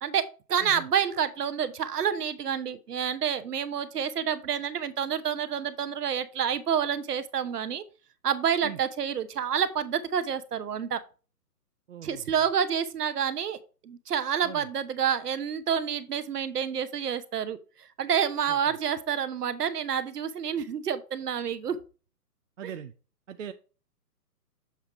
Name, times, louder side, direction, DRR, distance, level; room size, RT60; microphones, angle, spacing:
voice 1, 0.0-7.8 8.2-11.0 12.0-13.6 13.8-17.6 18.0-21.8 22.6-22.7, right 8 dB, 70° right, 13 dB, 1.0 m, -28 dB
voice 2, 11.9-12.2 14.4-14.6 22.6-22.9 23.3-23.5, right 9 dB, 50° right, 9 dB, 0.6 m, -40 dB
7.2 x 3.7 x 4.5 m, 0.35 s
hypercardioid pair, 150°, 49 cm